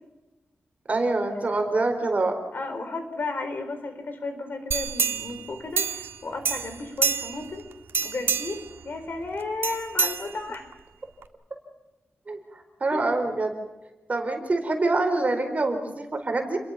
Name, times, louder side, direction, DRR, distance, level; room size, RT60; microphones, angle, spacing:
voice 1, 0.9-2.3 12.3-12.4 12.8-13.5 14.1-16.6, right 2 dB, 35° right, 5 dB, 4.6 m, -25 dB
voice 2, 2.5-7.7 8.0-8.6 8.8-10.7 12.9-13.1, left 3 dB, 55° left, 7 dB, 4.4 m, -33 dB
sound 1, 4.7-6.2 6.4-7.5 7.9-8.7 9.6-10.7 11.2-11.3, right 5 dB, 70° right, 1.8 m, -27 dB
30.0 x 22.5 x 5.9 m, 1.1 s
wide cardioid pair, 150°, 4 cm